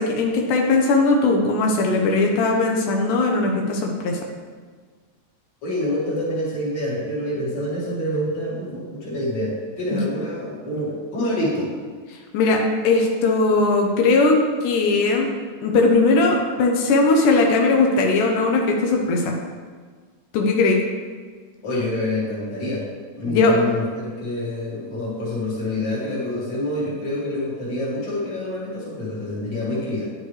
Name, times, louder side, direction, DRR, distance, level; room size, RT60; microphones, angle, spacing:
voice 1, 0.0-4.2 9.9-10.0 12.3-15.3 15.6-19.3 20.3-20.8 23.3-23.6, left 3 dB, 85° left, 1 dB, 2.3 m, -19 dB
voice 2, 5.6-11.7 21.6-22.9 23.2-30.1, left 1 dB, 40° left, -6 dB, 2.3 m, -26 dB
10.0 x 6.4 x 3.2 m, 1.5 s
omnidirectional pair, 3.6 m